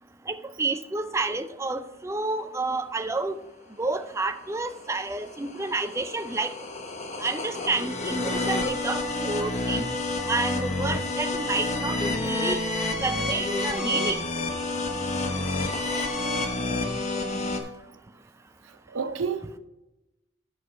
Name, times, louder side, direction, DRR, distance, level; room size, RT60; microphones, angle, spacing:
voice 1, 0.3-3.4 3.8-6.5 7.2-9.9 10.3-12.6 13.0-14.3, right 3 dB, 15° right, 0.4 m, -29 dB
sound 1, 4.6-17.6, left 2 dB, 35° left, 0.9 m, -29 dB
voice 2, 18.9-19.6, right 5 dB, 85° right, 0.7 m, -31 dB
8.2 x 6.3 x 5.5 m
head